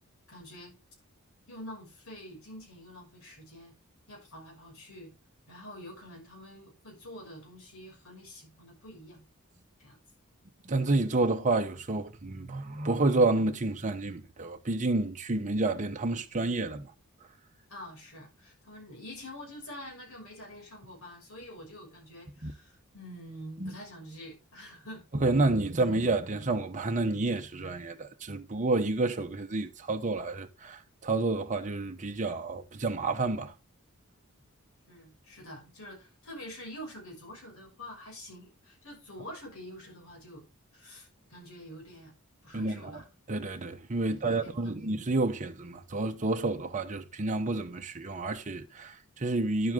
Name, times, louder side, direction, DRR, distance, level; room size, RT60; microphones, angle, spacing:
voice 1, 0.3-0.7 1.5-3.7 4.1-5.1 5.5-9.2 9.8-10.0 17.7-25.0 34.9-40.4 40.7-42.1 42.4-43.1 44.0-44.9, left 1 dB, 70° left, 6.4 m, -46 dB
voice 2, 10.7-16.9 22.4-22.5 23.6-23.7 25.1-33.5 42.5-42.9 43.3-49.7, right 2 dB, 35° right, 0.9 m, -29 dB
11.0 x 8.0 x 3.7 m
head